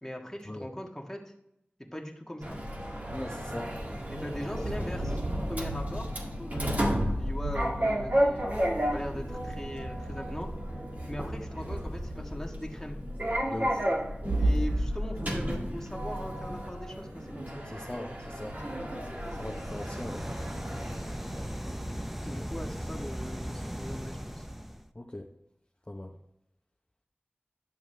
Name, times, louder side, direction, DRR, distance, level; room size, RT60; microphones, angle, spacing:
voice 1, 0.0-1.3 1.9-2.6 4.1-5.2 5.5-6.8 7.1-10.5 11.1-13.0 14.4-17.6 22.2-24.4, equal, 10° left, 1 dB, 1.5 m, -40 dB
Sliding door, 2.4-22.0, equal, 45° right, 1.8 m, -32 dB
voice 2, 3.1-3.7 4.6-4.7 13.5-13.9 17.6-18.6 19.4-20.3 22.3-22.5 24.9-25.3 25.9-26.1, left 1 dB, 25° left, 1 dB, 0.8 m, -40 dB
sound 1, 19.1-24.9, equal, 5° right, 0.6 m, -38 dB
11.0 x 7.0 x 3.3 m, 0.79 s
wide cardioid pair, 60°, 4 cm